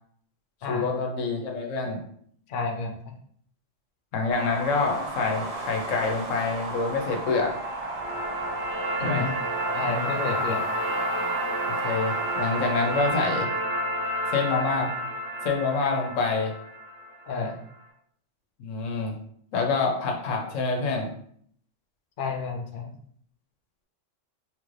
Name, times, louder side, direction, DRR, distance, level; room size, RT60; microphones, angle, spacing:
voice 1, 0.7-2.0 4.1-7.5 9.0-9.3 11.7-13.5 14.3-14.9 15.4-16.5 18.6-19.1 19.5-21.1, left 4 dB, 85° left, 1 dB, 1.0 m, -26 dB
voice 2, 2.5-2.9 9.0-9.3 9.7-10.6 17.3-17.6 22.2-22.9, left 4 dB, 55° left, 2 dB, 0.6 m, -30 dB
sound 1, 4.3-13.1, right 2 dB, 45° right, 0.5 m, -34 dB
sound 2, 7.4-17.5, right 1 dB, 60° right, 1.1 m, -31 dB
3.2 x 2.5 x 3.1 m, 0.64 s
omnidirectional pair, 1.3 m